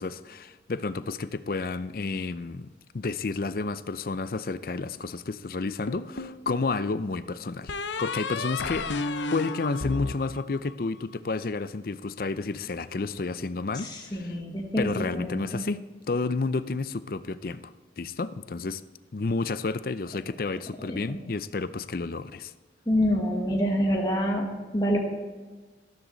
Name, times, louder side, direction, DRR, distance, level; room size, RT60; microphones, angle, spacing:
voice 1, 0.0-7.7 8.0-8.9 9.3-14.4 14.8-15.8 16.1-18.8 19.1-22.5, left 3 dB, 55° left, 14 dB, 0.5 m, -31 dB
sound 1, 5.9-6.7 7.7-11.0, left 3 dB, 85° left, 0.7 m, -33 dB
voice 2, 13.7-15.6 20.8-21.2 22.9-25.0, equal, 25° left, 0 dB, 1.5 m, -27 dB
13.5 x 13.0 x 4.0 m, 1.3 s
head